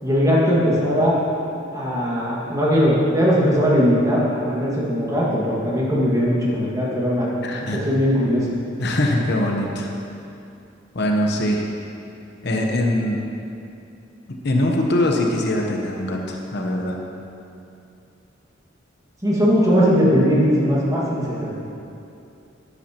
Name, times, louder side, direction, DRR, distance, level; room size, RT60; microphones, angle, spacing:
voice 1, 0.0-1.2 1.7-7.3 7.7-8.5 19.2-21.5, equal, 20° right, -6 dB, 1.8 m, -19 dB
voice 2, 7.4-7.8 8.8-9.9 10.9-11.6 12.4-13.2 14.4-17.0, left 1 dB, 60° left, 1 dB, 0.9 m, -22 dB
10.5 x 10.5 x 2.9 m, 2.7 s
head